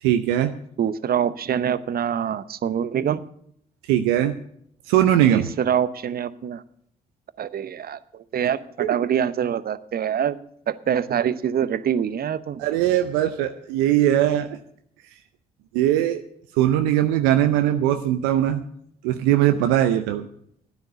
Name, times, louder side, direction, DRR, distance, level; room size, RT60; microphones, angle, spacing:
voice 1, 0.0-0.5 3.9-4.4 4.9-5.5 8.8-8.9 12.6-14.6 15.7-16.2 16.5-18.6 19.0-20.3, right 12 dB, 80° right, 7 dB, 0.6 m, -20 dB
voice 2, 0.8-3.2 5.3-6.6 7.4-10.4 10.7-12.6, right 8 dB, 55° right, 15 dB, 0.8 m, -25 dB
12.5 x 9.6 x 6.7 m, 0.68 s
hypercardioid pair, 45°, 19 cm